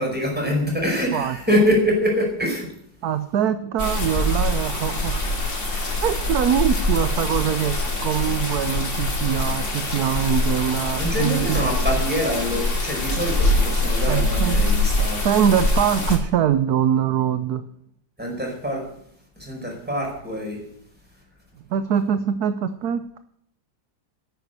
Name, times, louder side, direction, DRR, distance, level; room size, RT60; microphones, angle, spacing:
voice 1, 0.0-2.7 11.0-15.2 18.2-18.8 19.4-20.6, equal, 5° right, -1 dB, 5.0 m, -24 dB
voice 2, 3.0-5.2 6.0-11.6 14.1-14.7 15.2-17.6 21.7-23.2, right 9 dB, 65° right, 11 dB, 1.1 m, -23 dB
sound 1, 3.8-16.2, left 2 dB, 40° left, 2.7 m, -24 dB
10.5 x 9.3 x 9.3 m, 0.70 s
omnidirectional pair, 2.0 m